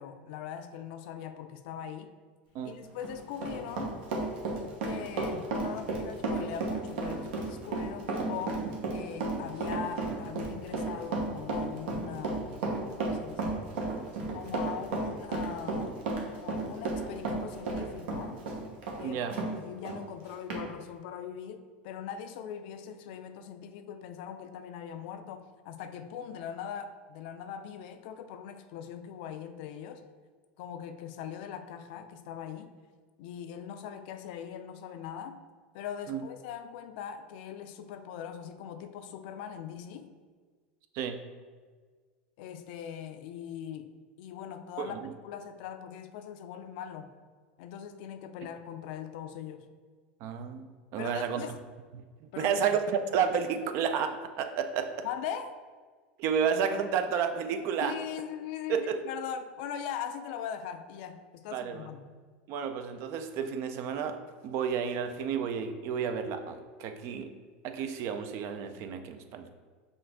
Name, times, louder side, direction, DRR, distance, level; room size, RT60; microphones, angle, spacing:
voice 1, 0.0-2.1 2.6-4.0 4.8-12.6 13.0-13.6 14.3-18.4 19.0-30.0 30.6-32.7 33.2-35.4 35.7-40.1 42.4-45.0 45.2-47.1 47.6-49.6 51.0-51.6 52.3-52.7 55.0-55.5 57.8-62.1, left 8 dB, 70° left, 9 dB, 0.4 m, -41 dB
Run, 2.8-19.5 19.8-20.0 20.5-20.6, right 3 dB, 75° right, 1.0 m, -33 dB
voice 2, 19.0-19.4 36.1-36.3 40.9-41.2 44.8-45.1 50.2-51.4 51.9-55.1 56.2-57.9 58.7-59.0 61.5-61.9 62.5-67.3 67.6-69.5, right 7 dB, 55° right, 8 dB, 0.4 m, -31 dB
5.8 x 2.5 x 3.5 m, 1.5 s
supercardioid pair, 110°, 5 cm